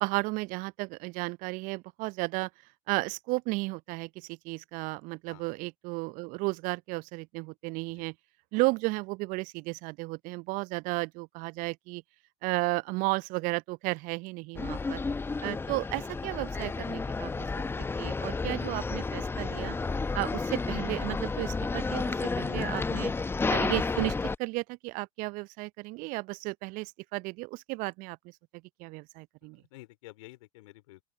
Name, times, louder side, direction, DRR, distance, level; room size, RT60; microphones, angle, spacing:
voice 1, 0.0-2.5 2.9-8.1 8.5-12.0 12.4-15.0 15.4-17.6 18.0-19.8 20.1-23.1 23.5-28.3 28.8-29.6, right 25 dB, 45° right, 0.7 m, -33 dB
sound 1, 14.6-24.4, left 4 dB, 10° left, 0.9 m, -31 dB
voice 2, 14.7-15.0 29.5-31.0, left 19 dB, 60° left, 3.6 m, -51 dB
open air
figure-of-eight pair, 80°, 19 cm